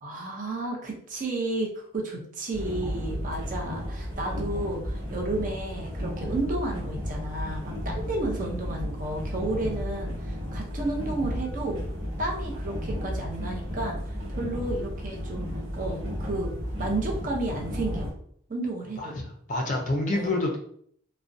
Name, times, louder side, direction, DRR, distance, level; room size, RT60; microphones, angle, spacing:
voice 1, 0.0-11.8 12.2-15.5 15.8-16.5 16.8-18.1 18.5-19.1 20.1-20.4, right 2 dB, 40° right, 0 dB, 0.5 m, -32 dB
sound 1, 2.5-18.1, equal, 65° right, 1.0 m, -33 dB
voice 2, 19.0-20.6, left 2 dB, 40° left, 1 dB, 0.4 m, -28 dB
2.5 x 2.0 x 2.5 m, 0.64 s
head